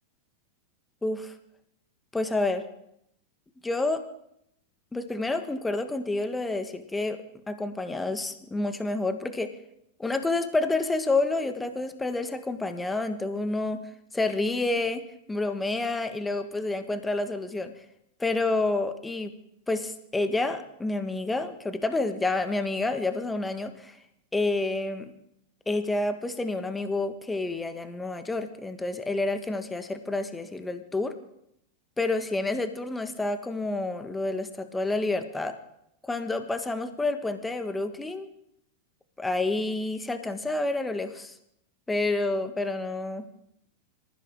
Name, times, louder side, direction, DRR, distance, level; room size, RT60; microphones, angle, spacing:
voice 1, 1.0-1.3 2.1-2.6 3.6-4.0 4.9-9.5 10.0-15.0 15.3-17.7 18.2-19.3 19.7-24.0 24.3-25.1 25.7-31.2 32.0-35.5 36.0-38.3 39.2-41.3 41.9-43.3, left 2 dB, 10° left, 9 dB, 1.6 m, -29 dB
26.0 x 15.0 x 3.7 m, 0.77 s
figure-of-eight pair, 90°, 0 cm